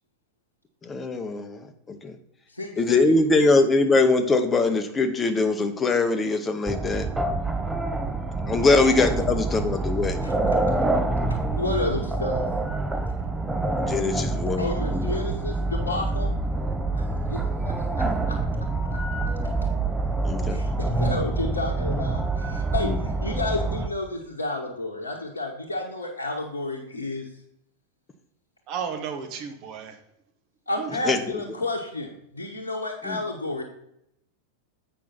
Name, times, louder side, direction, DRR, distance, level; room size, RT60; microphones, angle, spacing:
voice 1, 0.9-1.6 1.9-2.1 2.8-7.1 8.5-10.2 13.9-15.3 20.2-20.6 22.9-23.0 31.0-31.4 33.0-33.2, left 3 dB, 20° left, 7 dB, 0.9 m, -22 dB
voice 2, 2.5-3.5 8.7-8.8 10.2-10.3 11.5-12.4 14.6-16.4 17.3-18.3 20.5-27.3 30.7-33.6, left 2 dB, 80° left, -3 dB, 1.2 m, -31 dB
sound 1, 6.7-23.9, right 2 dB, 10° right, 0.6 m, -26 dB
voice 3, 28.7-30.0 30.8-31.0, right 7 dB, 40° right, 5 dB, 1.3 m, -33 dB
8.4 x 5.6 x 4.1 m, 0.79 s
figure-of-eight pair, 90°, 0 cm